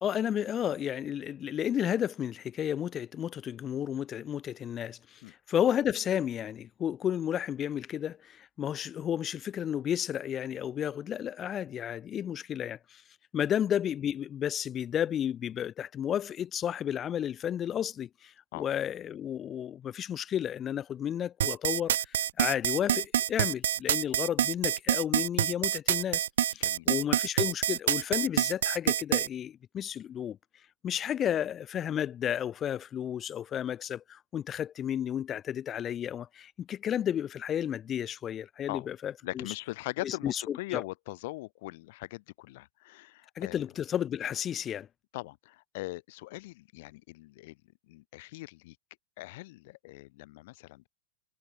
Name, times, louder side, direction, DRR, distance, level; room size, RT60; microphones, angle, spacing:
voice 1, 0.0-13.0 13.3-30.4 30.8-39.5 40.0-40.8 43.4-44.9, left 9 dB, 30° left, 0.8 m, -32 dB
sound 1, 21.4-29.3, right 11 dB, 80° right, 0.6 m, -26 dB
voice 2, 39.2-43.6 45.1-47.6 47.9-48.8 49.2-50.9, left 20 dB, 60° left, 0.8 m, -41 dB
hypercardioid pair, 120°, 0 cm